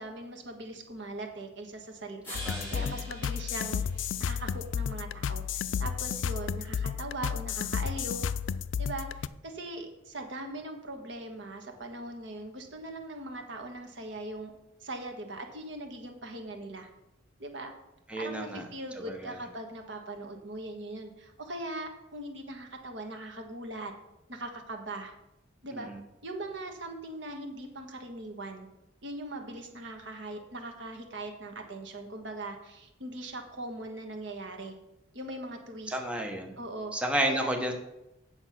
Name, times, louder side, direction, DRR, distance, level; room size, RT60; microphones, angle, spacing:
voice 1, 0.0-2.4 2.7-8.3 8.8-14.5 14.8-16.9 17.4-17.7 18.2-23.9 24.3-25.1 25.6-25.9 26.2-28.7 29.0-34.7 35.1-36.0 36.6-36.9 37.3-37.5, right 2 dB, 70° right, 4 dB, 1.5 m, -40 dB
sound 1, 2.2-4.6, left 1 dB, 10° left, 4.1 m, -44 dB
sound 2, 2.3-9.3, left 7 dB, 80° left, 0.4 m, -32 dB
voice 2, 2.5-2.9 18.1-18.6 19.1-19.3 25.9-26.0 35.9-36.5 36.9-37.7, right 1 dB, 5° right, 2 dB, 0.9 m, -31 dB
8.5 x 6.8 x 5.8 m, 0.91 s
head